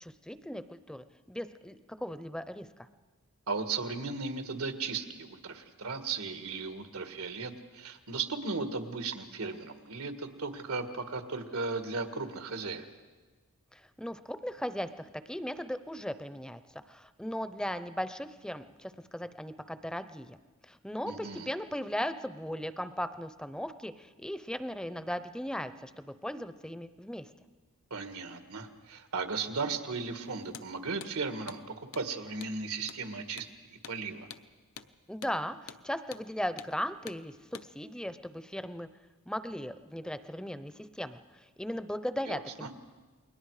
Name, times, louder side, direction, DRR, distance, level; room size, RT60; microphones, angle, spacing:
voice 1, 0.0-2.7 13.7-20.4 20.7-27.3 35.1-38.9 39.3-41.2 41.6-42.7, equal, 5° left, 12 dB, 0.6 m, -37 dB
voice 2, 3.5-12.8 21.0-21.5 27.9-33.4 33.9-34.3 42.3-42.7, right 4 dB, 90° right, 7 dB, 1.8 m, -36 dB
Hammer, 30.5-30.7 31.0-31.1 31.5-31.6 31.9-32.1 32.4-32.6 32.9-33.0 33.4-33.5 33.8-34.0 34.3-34.5 34.8-34.9 35.2-35.4 35.7-35.8 36.1-36.3 36.6-36.7 37.1-37.2 37.5-37.7, left 8 dB, 75° left, 0.8 m, -46 dB
29.0 x 21.5 x 4.9 m, 1.3 s
head